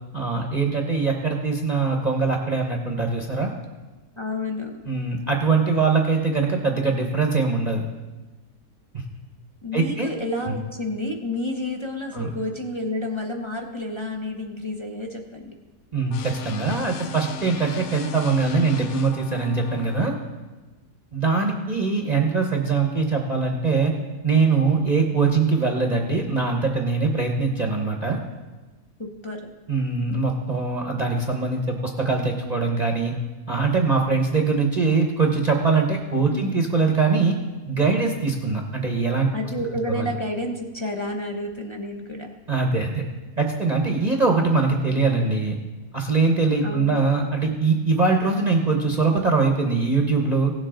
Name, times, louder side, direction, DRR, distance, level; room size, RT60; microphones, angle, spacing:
voice 1, 0.1-3.5 4.9-7.8 8.9-9.0 9.7-10.1 10.5-10.6 12.1-12.3 15.9-20.1 21.1-23.9 24.2-28.2 29.7-33.1 33.5-37.4 37.7-39.3 39.9-40.1 42.5-43.0 43.4-45.6 45.9-50.5, right 4 dB, 35° right, 1 dB, 0.8 m, -22 dB
voice 2, 4.2-4.8 9.6-15.5 29.0-29.5 36.3-36.6 39.3-42.3 46.6-47.0, left 1 dB, 30° left, 1 dB, 0.6 m, -30 dB
sound 1, 16.1-20.1, left 6 dB, 75° left, 1.1 m, -36 dB
17.0 x 7.3 x 3.8 m, 1.2 s
omnidirectional pair, 1.7 m